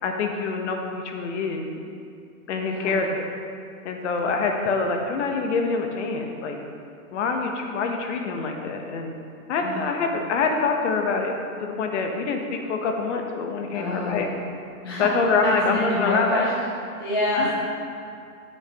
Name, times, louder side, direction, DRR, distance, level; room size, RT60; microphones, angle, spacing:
voice 1, 0.0-1.7 2.5-3.2 3.8-6.6 7.1-9.1 9.5-11.3 11.6-14.3 15.0-16.5 17.4-17.5, left 4 dB, 50° left, 3 dB, 0.9 m, -25 dB
voice 2, 2.7-3.0 9.6-9.9 13.7-14.2 14.8-15.1 15.4-16.5 17.0-17.5, left 1 dB, 20° left, -8 dB, 0.3 m, -27 dB
8.5 x 6.6 x 2.9 m, 2.4 s
supercardioid pair, 165°, 44 cm